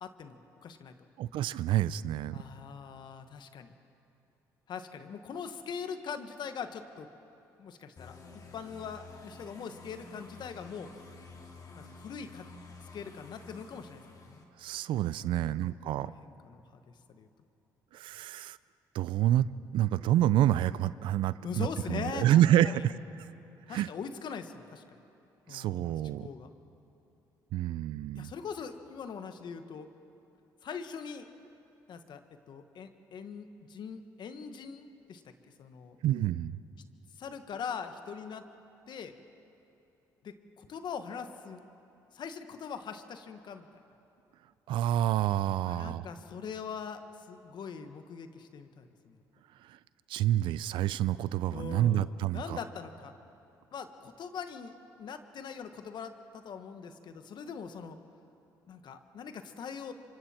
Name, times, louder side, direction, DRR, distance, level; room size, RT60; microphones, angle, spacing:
voice 1, 0.0-0.9 2.3-3.7 4.7-7.1 7.6-10.9 11.8-12.5 12.9-14.4 15.2-16.8 17.1-17.3 21.4-22.8 23.7-25.0 25.5-25.9 26.2-26.5 28.1-29.9 30.6-31.3 31.9-36.0 37.2-38.5 38.9-39.1 40.2-41.6 42.1-43.7 45.6-47.0 47.3-49.2 51.5-53.1 53.7-58.0 58.7-59.9, left 6 dB, 60° left, 8 dB, 1.4 m, -42 dB
voice 2, 1.2-2.4 14.6-16.1 17.9-18.6 18.9-19.5 19.7-22.9 23.7-23.9 25.5-26.3 27.5-28.3 36.0-36.6 44.7-46.1 49.6-49.8 50.1-52.6, right 12 dB, 75° right, 17 dB, 0.5 m, -28 dB
sound 1, 8.0-14.4, left 3 dB, 45° left, 2.9 m, -51 dB
27.0 x 25.0 x 4.4 m, 2.9 s
supercardioid pair, 65°, 8 cm